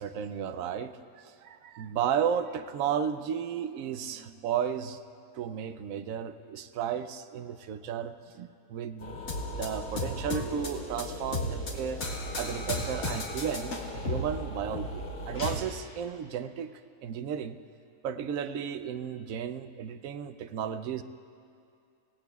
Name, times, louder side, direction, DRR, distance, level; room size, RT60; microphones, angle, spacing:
voice 1, 0.0-5.0 5.3-9.2 9.5-12.0 12.4-17.6 18.0-21.0, right 8 dB, 70° right, 11 dB, 1.0 m, -34 dB
sound 1, 9.0-15.6, left 1 dB, 65° left, 2.0 m, -35 dB
26.5 x 17.0 x 2.3 m, 2.5 s
omnidirectional pair, 1.6 m